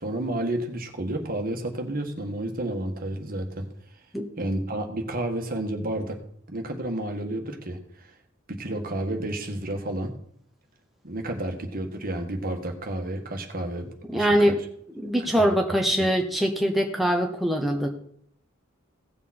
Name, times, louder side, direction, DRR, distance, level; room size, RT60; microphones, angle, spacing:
voice 1, 0.0-3.7 4.4-6.2 6.5-8.1 8.5-10.1 11.0-14.5 15.2-15.5, right 1 dB, 45° right, 4 dB, 1.7 m, -31 dB
voice 2, 14.1-14.6 14.9-17.9, equal, ahead, 1 dB, 1.0 m, -23 dB
16.5 x 7.1 x 4.3 m, 0.65 s
head